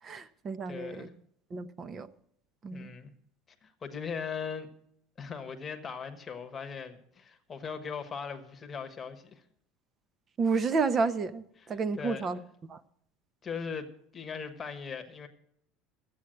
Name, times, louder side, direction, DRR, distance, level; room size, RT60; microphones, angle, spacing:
voice 1, 0.0-1.1 1.5-2.1 2.6-2.9 10.4-12.4 12.7-12.8, right 4 dB, 25° right, 0.6 m, -31 dB
voice 2, 0.7-1.1 2.7-3.1 3.6-4.7 5.2-9.4 12.0-12.4 13.4-15.3, left 6 dB, 20° left, 1.2 m, -39 dB
13.0 x 8.4 x 7.7 m
cardioid pair, 155°, 0 cm